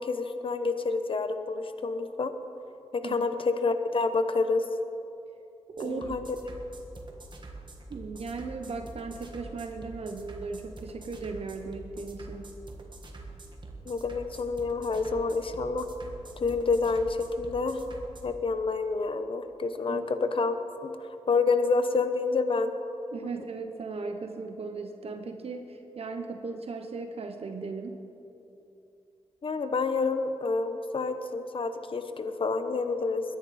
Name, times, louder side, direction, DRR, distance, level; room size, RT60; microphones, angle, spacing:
voice 1, 0.0-2.3 2.9-4.6 5.8-6.3 13.9-15.9 16.4-17.8 18.2-22.7 29.4-33.2, left 4 dB, 50° left, 9 dB, 0.9 m, -28 dB
voice 2, 5.7-6.2 7.9-12.5 19.9-20.0 23.1-28.0, right 4 dB, 60° right, 5 dB, 0.9 m, -37 dB
sound 1, 5.8-18.2, right 2 dB, 45° right, 1.5 m, -45 dB
21.5 x 10.5 x 4.2 m, 2.8 s
wide cardioid pair, 105°, 11 cm